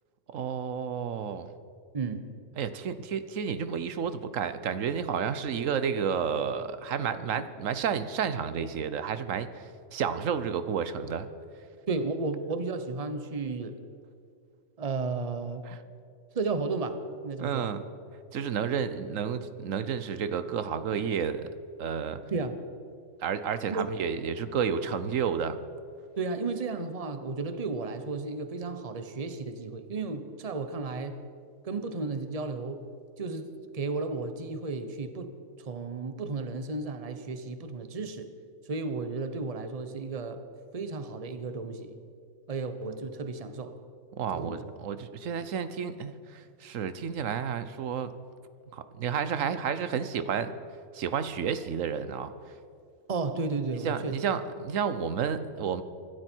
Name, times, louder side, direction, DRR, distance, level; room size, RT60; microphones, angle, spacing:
voice 1, 0.3-1.5 2.6-11.3 15.6-15.8 17.4-17.9 18.3-21.5 21.8-22.2 23.2-25.6 44.1-48.1 48.7-50.6 50.9-52.3 53.8-55.8, right 7 dB, 85° right, 12 dB, 1.2 m, -31 dB
voice 2, 1.9-2.3 11.9-13.8 14.8-15.7 16.3-17.7 22.3-22.6 23.7-23.9 26.2-31.2 31.6-32.8 33.2-35.3 35.6-38.3 38.7-40.4 40.7-42.0 42.5-43.8 44.3-44.6 49.4-49.5 53.1-54.2, right 3 dB, 30° right, 9 dB, 1.0 m, -33 dB
25.0 x 12.5 x 4.6 m, 2.4 s
omnidirectional pair, 1.3 m